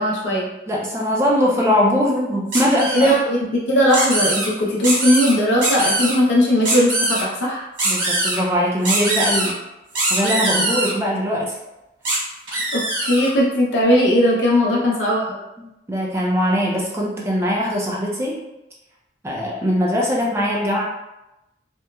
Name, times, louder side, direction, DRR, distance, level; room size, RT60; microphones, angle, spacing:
voice 1, 0.0-0.5 2.9-7.6 12.7-15.3, equal, 75° left, -4 dB, 0.6 m, -18 dB
voice 2, 0.7-3.1 7.8-9.6 10.1-11.6 14.6-14.8 15.9-18.4 19.2-20.8, equal, 15° right, -3 dB, 0.4 m, -21 dB
sound 1, 2.5-3.2 3.9-4.5 4.8-5.3 5.6-6.1 6.6-7.2 7.8-8.4 8.8-9.5 9.9-10.9 12.0-12.2 12.5-13.3, right 2 dB, 80° right, 1.3 m, -22 dB
2.9 x 2.1 x 2.2 m, 0.95 s
head